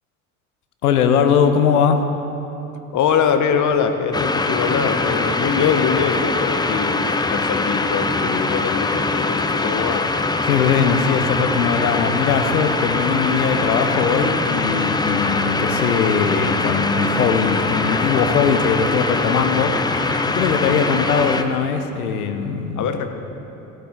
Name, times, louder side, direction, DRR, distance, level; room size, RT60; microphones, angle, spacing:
voice 1, 0.8-2.2 10.4-19.8 20.3-22.9, left 6 dB, 80° left, 8 dB, 1.0 m, -20 dB
voice 2, 2.9-10.0 22.8-23.1, left 6 dB, 40° left, 7 dB, 1.1 m, -22 dB
sound 1, 4.1-21.4, left 3 dB, 10° left, 0.6 m, -22 dB
16.0 x 8.7 x 4.5 m, 3.0 s
hypercardioid pair, 70°, 44 cm